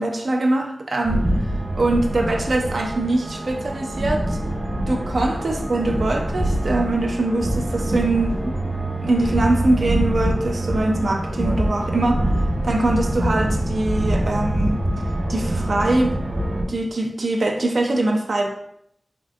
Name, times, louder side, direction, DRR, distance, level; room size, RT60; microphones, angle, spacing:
voice 1, 0.0-1.3 1.8-4.4 4.9-8.5 9.0-12.3 12.6-14.8 15.3-16.1 16.7-18.5, right 2 dB, 75° right, 1 dB, 0.3 m, -22 dB
sound 1, 1.0-16.6, right 1 dB, 45° right, 0.8 m, -24 dB
3.4 x 2.5 x 2.3 m, 0.71 s
wide cardioid pair, 60°, 0 cm